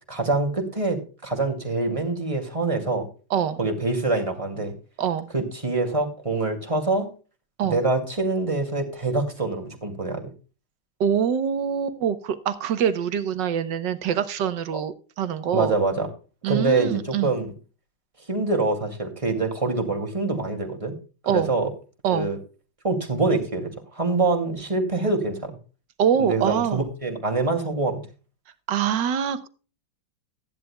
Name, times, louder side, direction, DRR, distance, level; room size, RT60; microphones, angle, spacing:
voice 1, 0.1-3.1 3.6-4.7 5.3-7.1 7.6-10.2 14.7-14.8 15.5-16.1 16.5-17.5 18.3-21.0 21.3-21.7 22.1-22.4 22.8-25.6 26.2-28.1, right 3 dB, 15° right, 2 dB, 2.4 m, -25 dB
voice 2, 5.0-5.3 7.6-7.8 11.0-15.7 16.4-17.3 21.3-21.5 22.0-22.3 26.0-26.8 28.7-29.5, right 8 dB, 70° right, 12 dB, 1.6 m, -24 dB
16.0 x 11.0 x 2.3 m, 0.35 s
omnidirectional pair, 2.1 m